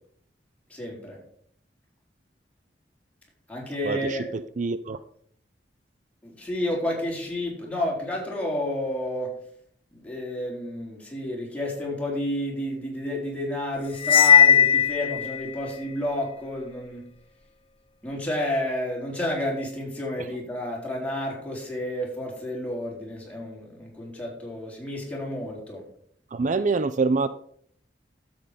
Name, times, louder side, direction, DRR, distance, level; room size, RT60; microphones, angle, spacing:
voice 1, 0.7-1.2 3.5-4.3 6.2-9.3 9.9-17.0 18.0-25.8, left 1 dB, 10° left, -3 dB, 4.0 m, -31 dB
voice 2, 3.8-5.0 26.3-27.3, right 4 dB, 45° right, 13 dB, 0.5 m, -25 dB
Cymbal, 14.0-15.5, left 8 dB, 30° left, 0.4 m, -17 dB
12.5 x 7.9 x 5.1 m, 0.63 s
head